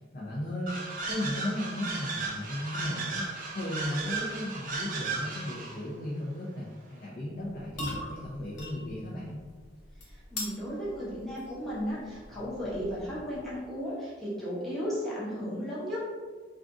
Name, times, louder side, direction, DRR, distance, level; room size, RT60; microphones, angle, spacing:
voice 1, 0.1-3.3 3.5-9.5, left 1 dB, 50° left, -6 dB, 0.5 m, -35 dB
sound 1, 0.7-5.8, right 3 dB, 50° right, 0.5 m, -35 dB
sound 2, 7.4-13.8, left 1 dB, 90° left, 0.8 m, -43 dB
voice 2, 10.0-16.0, equal, ahead, -10 dB, 1.0 m, -35 dB
2.5 x 2.5 x 3.5 m, 1.5 s
head